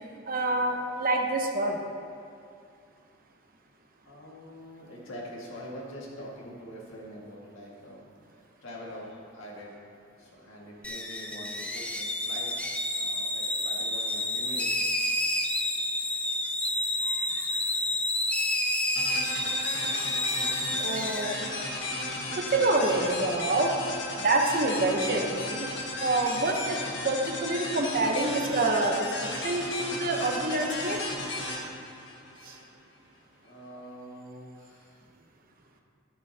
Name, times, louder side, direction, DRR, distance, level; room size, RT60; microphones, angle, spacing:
voice 1, 0.3-1.8 17.0-17.5 19.0-19.5 20.8-21.4 22.4-23.7 24.2-31.0 32.4-32.6, right 2 dB, 45° right, 2 dB, 0.9 m, -27 dB
voice 2, 4.0-8.1 8.3-9.8 10.2-12.5 13.0-14.9 33.4-35.0, equal, 75° left, -4 dB, 1.9 m, -44 dB
sound 1, 10.8-23.1, left 1 dB, 5° left, 0.5 m, -30 dB
sound 2, 19.0-32.6, left 2 dB, 60° left, 1.5 m, -35 dB
11.0 x 9.6 x 2.9 m, 2.4 s
head